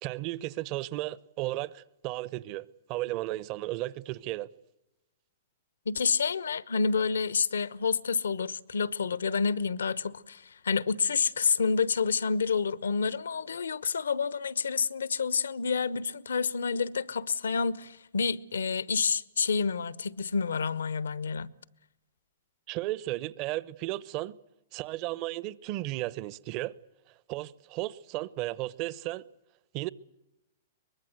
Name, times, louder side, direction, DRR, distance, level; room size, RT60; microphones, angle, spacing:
voice 1, 0.0-4.5 22.7-24.3 24.7-26.7 27.3-29.2 29.7-29.9, right 17 dB, 40° right, 0.9 m, -34 dB
voice 2, 5.9-21.5, left 5 dB, 80° left, 1.0 m, -29 dB
23.5 x 21.0 x 8.0 m
hypercardioid pair, 115°, 0 cm